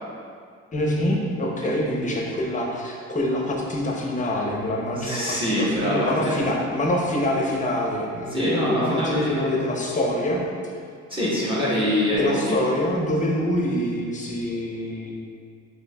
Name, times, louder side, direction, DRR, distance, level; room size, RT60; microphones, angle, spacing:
voice 1, 0.7-10.4 12.1-15.1, left 1 dB, 25° left, -2 dB, 0.6 m, -25 dB
voice 2, 5.0-6.3 8.3-9.6 11.1-12.6, left 1 dB, 15° right, -8 dB, 0.9 m, -24 dB
4.4 x 2.7 x 2.2 m, 2.1 s
cardioid pair, 90°, 30 cm